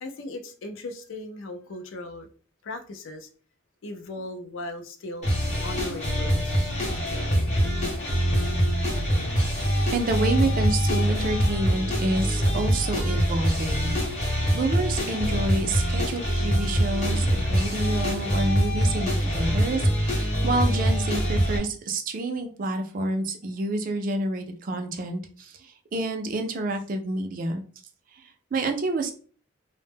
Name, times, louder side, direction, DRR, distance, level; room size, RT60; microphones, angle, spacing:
voice 1, 0.0-2.3 2.6-3.3 3.8-5.3 5.6-6.8, left 2 dB, 70° left, 0.4 m, -37 dB
sound 1, 5.2-21.6, equal, 35° left, 0.8 m, -24 dB
voice 2, 9.3-27.6 28.1-29.1, right 2 dB, 40° right, 0.3 m, -29 dB
2.0 x 2.0 x 3.4 m
head